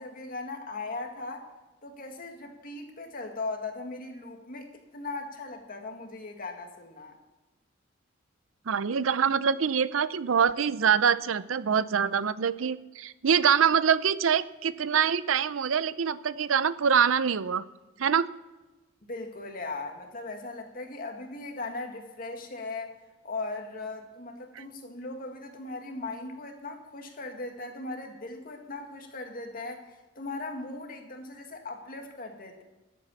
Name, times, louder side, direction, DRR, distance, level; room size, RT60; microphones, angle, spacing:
voice 1, 0.0-1.5 1.8-7.2 19.0-22.9 23.2-32.6, left 3 dB, 45° left, 3 dB, 2.0 m, -38 dB
voice 2, 8.7-17.6 18.0-18.3 24.6-24.7, right 7 dB, 80° right, 16 dB, 0.5 m, -25 dB
13.0 x 8.6 x 7.2 m, 1.1 s
head